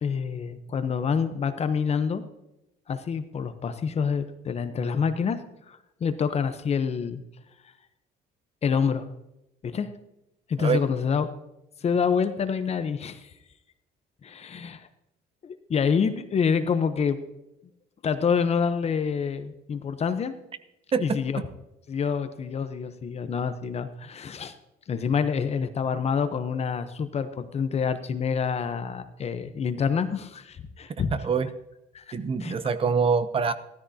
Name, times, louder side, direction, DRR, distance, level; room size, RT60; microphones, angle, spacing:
voice 1, 0.0-2.2 2.9-5.4 5.7-7.2 8.6-9.1 9.6-9.9 10.5-11.3 11.8-13.3 14.2-14.9 15.4-17.2 18.0-20.3 21.0-21.4 21.9-24.5 24.9-31.1 31.9-32.6, left 6 dB, 40° left, 10 dB, 0.8 m, -27 dB
voice 2, 31.1-31.5 32.1-33.5, right 5 dB, 35° right, 13 dB, 0.8 m, -24 dB
15.5 x 13.5 x 2.8 m, 0.90 s
cardioid pair, 110°, 17 cm